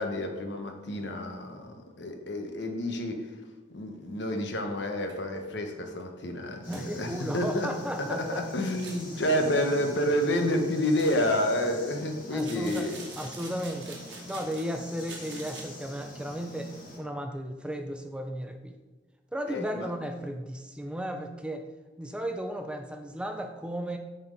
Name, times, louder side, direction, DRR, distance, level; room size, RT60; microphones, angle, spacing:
voice 1, 0.0-3.2 3.7-7.7 8.1-13.0 19.5-19.9, left 1 dB, 75° left, 4 dB, 1.0 m, -29 dB
sound 1, 4.4-4.5 5.0-5.1 5.5-5.6 6.0-6.1 6.7-7.1 8.6-9.1 10.8-11.4 12.3-14.7 15.0-15.6, right 4 dB, 75° right, 1.4 m, -46 dB
sound 2, 6.6-17.0, left 1 dB, 50° left, 1.7 m, -45 dB
voice 2, 6.7-8.5 12.3-12.9 13.2-14.0 14.3-16.7 17.0-18.8 19.3-21.7 22.0-24.0, equal, 5° right, 5 dB, 0.3 m, -35 dB
6.6 x 4.4 x 5.1 m, 1.2 s
head